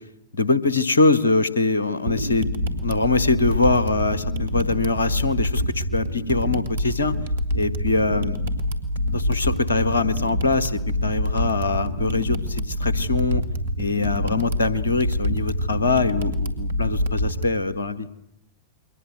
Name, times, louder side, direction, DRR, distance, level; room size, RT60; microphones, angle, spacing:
voice 1, 0.3-2.5 2.8-7.1 7.5-8.4 9.1-13.4 13.8-18.1, left 3 dB, 75° left, 15 dB, 1.5 m, -23 dB
sound 1, 2.1-17.5, left 1 dB, 65° right, 2.6 m, -26 dB
28.5 x 23.5 x 8.0 m, 0.81 s
figure-of-eight pair, 90°, 0 cm